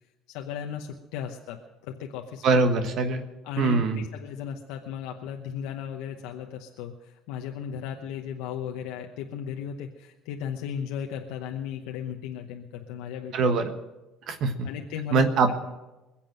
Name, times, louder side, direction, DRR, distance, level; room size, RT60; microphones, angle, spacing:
voice 1, 0.3-2.7 3.4-13.6 14.6-15.5, left 8 dB, 80° left, 3 dB, 0.9 m, -36 dB
voice 2, 2.4-3.2 3.6-4.0 13.3-13.7 14.3-14.7 15.1-15.5, right 4 dB, 60° right, 7 dB, 1.4 m, -23 dB
21.5 x 7.4 x 7.7 m, 1.1 s
hypercardioid pair, 70°, 0 cm